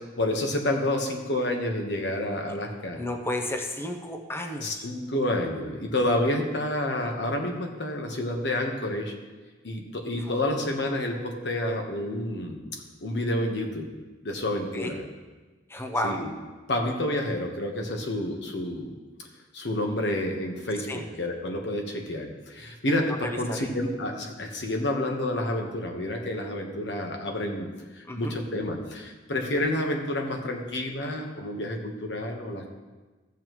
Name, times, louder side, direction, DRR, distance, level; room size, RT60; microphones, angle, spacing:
voice 1, 0.2-3.0 4.6-9.1 9.6-13.9 14.2-15.0 16.0-16.3 16.7-18.9 19.5-27.7 27.9-32.7, left 1 dB, 85° left, 2 dB, 1.3 m, -29 dB
voice 2, 3.0-4.7 14.7-14.9 15.7-16.2 20.9-21.1 23.2-23.7 28.1-28.3, left 1 dB, 15° left, 3 dB, 0.7 m, -32 dB
14.5 x 7.3 x 3.1 m, 1.3 s
head